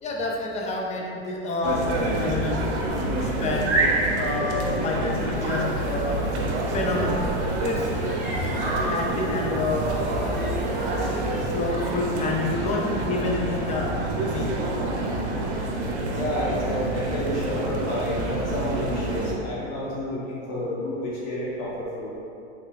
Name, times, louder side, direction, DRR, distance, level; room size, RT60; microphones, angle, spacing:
voice 1, 0.0-2.6 2.9-3.6 4.2-6.3 6.7-7.2 7.6-7.8 8.8-10.0 11.5-13.9 14.3-14.5, left 3 dB, 20° left, -1 dB, 0.5 m, -28 dB
sound 1, 1.6-19.3, right 2 dB, 90° right, 0.7 m, -27 dB
sound 2, 5.3-12.5, right 1 dB, 25° right, 1.0 m, -33 dB
voice 2, 16.1-22.1, left 1 dB, 50° left, -6 dB, 1.3 m, -30 dB
3.9 x 3.8 x 2.4 m, 2.6 s
supercardioid pair, 115°, 33 cm